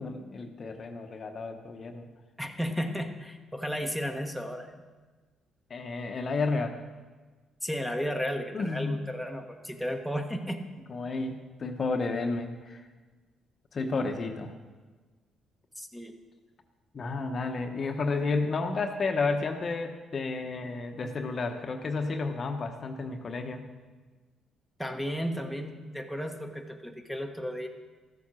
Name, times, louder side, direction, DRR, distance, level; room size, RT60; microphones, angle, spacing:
voice 1, 0.0-2.1 5.7-6.8 8.5-9.0 10.9-12.8 13.7-14.5 16.9-23.6, left 3 dB, 45° left, 5 dB, 1.0 m, -31 dB
voice 2, 2.4-4.7 7.6-10.6 15.8-16.1 24.8-27.7, equal, ahead, 4 dB, 1.2 m, -34 dB
14.0 x 7.3 x 6.2 m, 1.3 s
cardioid pair, 90°, 0 cm